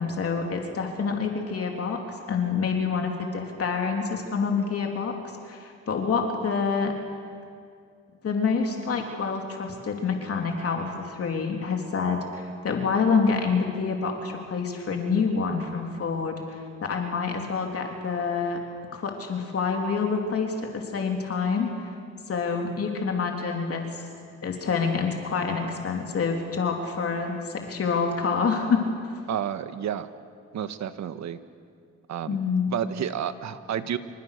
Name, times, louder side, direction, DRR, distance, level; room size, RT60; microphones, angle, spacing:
voice 1, 0.0-5.2 5.4-6.9 8.2-18.6 18.9-21.9 22.3-23.9 24.4-28.8 32.3-32.7, left 5 dB, 50° left, 2 dB, 3.4 m, -27 dB
voice 2, 29.3-30.1 30.5-31.4 32.1-32.4 32.7-34.0, right 9 dB, 65° right, 11 dB, 1.5 m, -30 dB
28.5 x 26.0 x 6.7 m, 2.2 s
cardioid pair, 90°, 30 cm